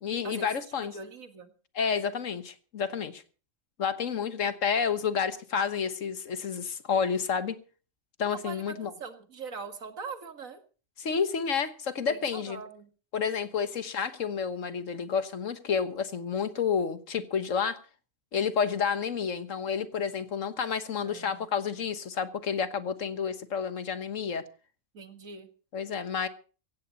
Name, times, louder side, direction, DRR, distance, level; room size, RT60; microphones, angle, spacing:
voice 1, 0.0-0.9 1.7-3.2 3.8-7.5 8.2-8.9 11.0-12.6 13.1-17.8 18.3-24.4 25.7-26.3, left 6 dB, 70° left, 1.6 m, -30 dB
voice 2, 0.8-1.5 8.3-10.6 12.1-12.9 21.0-21.5 24.9-25.5, right 4 dB, 85° right, 2.2 m, -42 dB
16.5 x 16.0 x 4.0 m
omnidirectional pair, 1.4 m